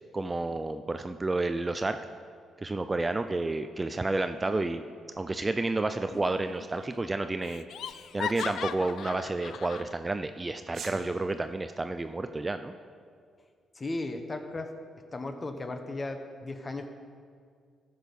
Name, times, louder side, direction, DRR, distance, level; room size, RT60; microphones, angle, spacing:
voice 1, 0.1-2.0 2.6-4.8 5.2-7.6 8.1-12.7, right 2 dB, 20° right, 9 dB, 0.3 m, -30 dB
Laughter, 6.1-6.7 6.9-7.0 7.4-9.9, left 8 dB, 70° left, 0.3 m, -38 dB
Sneeze, 8.3-8.6 10.6-11.0, right 6 dB, 60° right, 1.1 m, -41 dB
voice 2, 13.7-14.7 15.1-16.9, left 2 dB, 25° left, 7 dB, 0.9 m, -36 dB
14.0 x 6.4 x 5.2 m, 2.2 s
cardioid pair, 110°, 0 cm